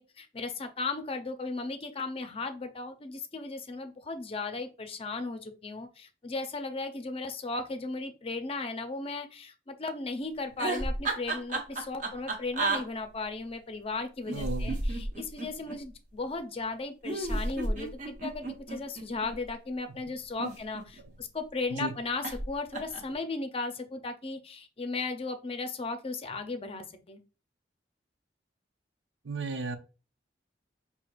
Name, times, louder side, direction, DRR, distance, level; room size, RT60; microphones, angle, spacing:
voice 1, 0.0-27.2, left 3 dB, 35° left, 7 dB, 0.5 m, -36 dB
sound 1, 10.5-12.8 14.2-15.8 17.0-19.4 20.2-21.2 22.2-22.5 22.7-23.1, right 2 dB, 45° right, 0.9 m, -32 dB
voice 2, 14.3-14.8 21.7-21.9 29.2-29.8, right 3 dB, 85° right, 8 dB, 0.6 m, -34 dB
5.9 x 2.8 x 2.4 m, 0.33 s
head